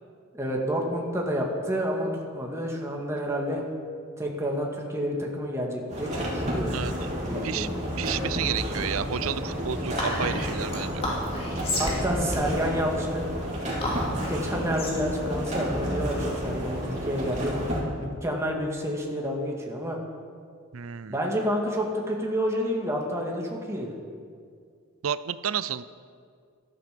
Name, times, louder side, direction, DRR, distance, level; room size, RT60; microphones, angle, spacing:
voice 1, 0.3-3.6 4.2-6.7 7.2-7.7 11.8-13.3 14.1-17.5 18.0-20.0 21.1-23.9, equal, 15° right, -1 dB, 2.1 m, -29 dB
sound 1, 5.9-17.8, equal, 35° right, 3.5 m, -31 dB
voice 2, 8.0-11.0 20.7-21.2 25.0-25.8, right 8 dB, 85° right, 15 dB, 0.6 m, -31 dB
Whispering, 10.0-16.6, left 1 dB, 30° left, 3.1 m, -33 dB
17.0 x 13.5 x 5.2 m, 2.1 s
head